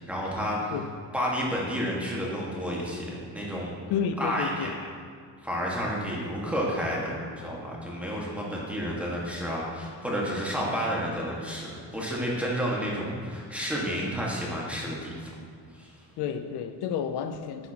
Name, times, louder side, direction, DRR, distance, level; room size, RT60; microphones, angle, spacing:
voice 1, 0.1-0.7 1.1-3.7 4.2-4.7 5.4-15.3 15.7-15.9, equal, 5° right, -4 dB, 1.6 m, -31 dB
voice 2, 3.9-4.7 16.2-17.7, left 7 dB, 80° left, 8 dB, 0.6 m, -30 dB
10.5 x 5.7 x 2.9 m, 2.1 s
cardioid pair, 115°, 39 cm